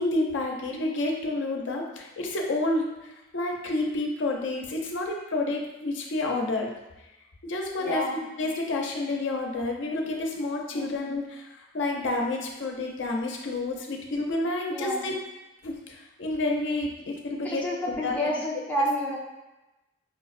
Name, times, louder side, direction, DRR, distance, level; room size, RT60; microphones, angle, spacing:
voice 1, 0.0-6.7 7.4-15.2 15.6-18.3, left 2 dB, 70° left, 0 dB, 0.5 m, -29 dB
voice 2, 7.8-8.1 10.7-10.9 14.7-15.1 17.4-19.2, equal, 10° left, -4 dB, 0.3 m, -29 dB
4.5 x 2.1 x 2.4 m, 1.0 s
head